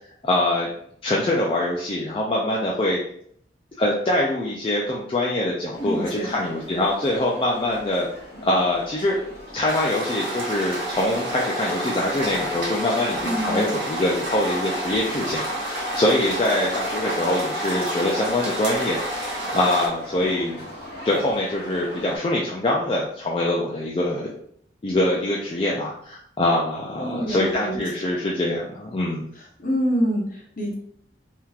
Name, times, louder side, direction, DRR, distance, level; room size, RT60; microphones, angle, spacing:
voice 1, 0.2-0.7 1.0-3.0 3.8-8.1 8.4-9.2 9.5-20.6 21.0-24.3 24.8-29.3, left 1 dB, 30° left, -4 dB, 0.4 m, -24 dB
sound 1, 5.7-22.2, left 1 dB, 65° left, 1.2 m, -39 dB
voice 2, 5.8-6.3 13.2-13.7 27.0-27.8 29.6-30.7, equal, 45° left, -1 dB, 0.8 m, -26 dB
sound 2, 9.7-19.9, right 1 dB, 70° right, 1.0 m, -29 dB
3.6 x 2.8 x 2.3 m, 0.65 s
head